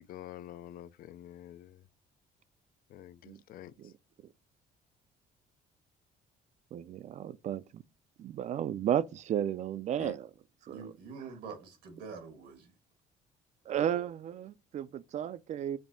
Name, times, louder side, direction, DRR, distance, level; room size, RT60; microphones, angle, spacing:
voice 1, 0.0-1.8 2.9-3.9 10.0-10.2, left 12 dB, 55° left, 0.4 m, -48 dB
voice 2, 6.7-7.8 8.2-10.3 10.7-10.9 11.2-11.3 13.7-15.8, right 10 dB, 45° right, 0.4 m, -33 dB
voice 3, 10.7-12.7, right 5 dB, 90° right, 1.5 m, -45 dB
7.3 x 2.6 x 2.6 m
cardioid pair, 110°, 17 cm